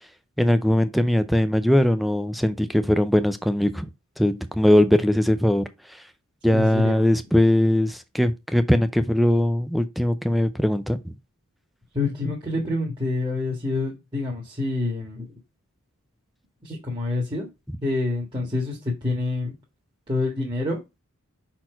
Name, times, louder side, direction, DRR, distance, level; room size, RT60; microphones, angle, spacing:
voice 1, 0.4-3.9 4.2-5.7 6.4-11.1, left 1 dB, ahead, 0.5 m, -20 dB
voice 2, 6.5-7.2 11.9-15.3 16.6-17.5 17.8-19.5 20.1-20.8, left 2 dB, 20° right, 1.7 m, -27 dB
5.9 x 4.4 x 4.4 m
head